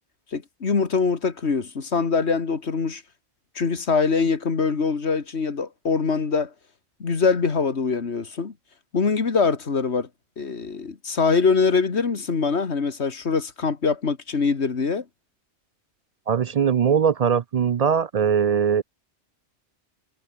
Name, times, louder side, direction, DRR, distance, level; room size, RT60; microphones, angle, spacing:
voice 1, 0.3-3.0 3.6-6.5 7.0-8.5 8.9-10.1 10.4-15.0, left 5 dB, 70° left, 2.1 m, -23 dB
voice 2, 16.3-18.8, right 7 dB, 55° right, 0.4 m, -21 dB
omnidirectional pair, 1.2 m